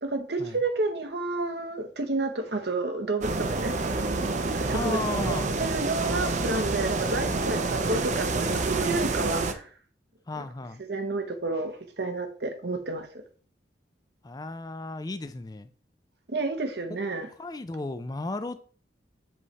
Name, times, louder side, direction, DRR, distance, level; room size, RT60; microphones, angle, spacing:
voice 1, 0.0-3.8 4.5-5.0 5.3-9.7 10.4-10.5 10.9-13.1 16.3-17.3, right 2 dB, 60° right, 0.9 m, -30 dB
sound 1, 3.2-9.5, right 3 dB, 40° right, 0.5 m, -28 dB
voice 2, 4.7-5.5 10.3-10.8 14.2-15.7 17.4-18.6, left 2 dB, 20° left, 0.4 m, -34 dB
7.6 x 3.2 x 4.1 m
head